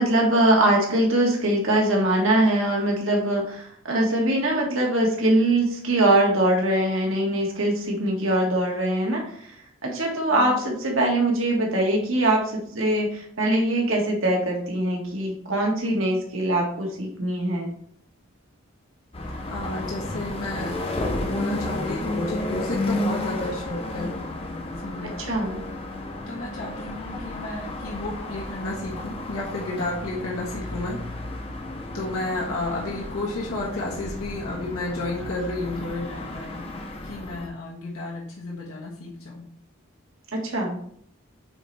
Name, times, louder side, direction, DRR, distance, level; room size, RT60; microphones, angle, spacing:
voice 1, 0.0-9.5 9.8-17.7 25.2-25.6 40.3-40.8, right 1 dB, 70° right, -1 dB, 1.8 m, -22 dB
sound 1, 19.1-37.5, left 2 dB, 25° left, 0.7 m, -32 dB
voice 2, 19.5-20.7 21.2-24.1 24.8-25.3 26.3-31.0 31.9-36.7 37.0-39.5, left 2 dB, 90° left, -4 dB, 1.4 m, -32 dB
8.6 x 4.1 x 3.3 m, 0.64 s
head